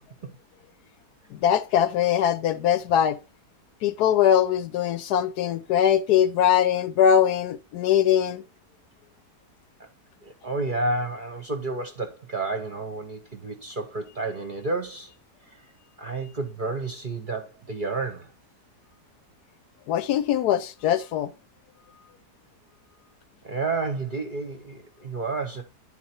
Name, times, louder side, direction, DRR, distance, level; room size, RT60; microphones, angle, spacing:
voice 1, 1.3-3.2 3.8-8.4 19.9-21.3, left 9 dB, 75° left, 1.1 m, -21 dB
voice 2, 10.2-15.1 15.5-15.6 16.0-18.3 23.4-25.6, right 3 dB, 40° right, 0.8 m, -30 dB
10.5 x 4.2 x 4.3 m
omnidirectional pair, 1.8 m